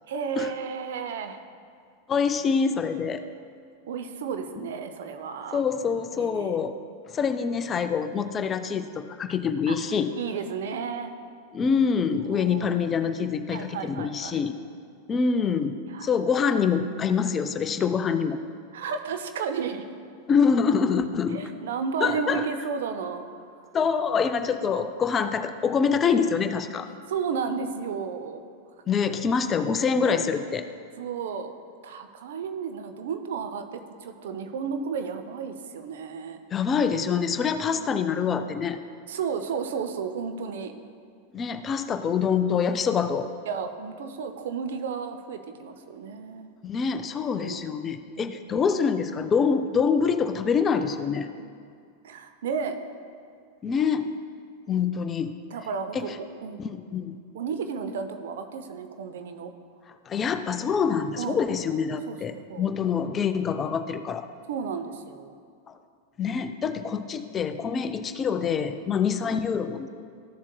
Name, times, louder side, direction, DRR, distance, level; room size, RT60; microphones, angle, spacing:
voice 1, 0.1-1.4 3.9-5.6 6.2-6.5 9.7-9.8 10.2-11.1 12.3-12.6 13.5-14.4 15.9-16.1 18.7-19.9 21.3-23.3 24.7-24.9 27.1-28.4 30.0-30.2 31.0-31.5 31.8-36.4 37.6-37.9 39.1-40.7 41.9-42.1 43.5-46.5 47.3-47.6 48.2-48.5 52.0-52.8 55.5-56.1 56.4-56.6 57.3-59.5 61.2-61.4 62.1-62.7 64.5-65.3 66.9-67.0 68.9-69.1, right 6 dB, 55° right, 7 dB, 0.6 m, -33 dB
voice 2, 2.1-3.2 5.5-6.8 7.1-10.1 11.5-14.5 15.1-15.8 16.0-18.4 20.3-21.4 22.0-22.5 23.7-26.9 28.9-30.7 36.5-38.8 41.3-43.3 46.6-51.3 53.6-54.1 54.7-55.3 55.9-56.2 56.6-57.2 60.1-64.3 65.7-65.8 66.2-69.9, left 6 dB, 25° left, 9 dB, 0.4 m, -25 dB
13.5 x 7.2 x 2.2 m, 2.3 s
figure-of-eight pair, 90°, 0 cm